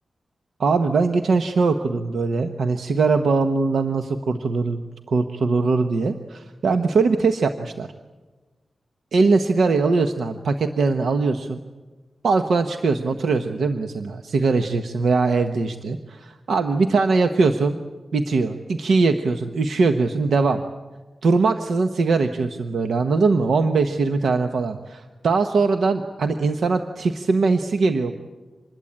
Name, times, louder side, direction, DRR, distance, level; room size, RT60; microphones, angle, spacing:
voice 1, 0.6-7.9 9.1-11.6 12.2-17.8 18.1-20.6 21.2-28.1, right 4 dB, 80° right, 7 dB, 1.1 m, -21 dB
26.0 x 21.0 x 8.8 m, 1.3 s
wide cardioid pair, 160°, 0 cm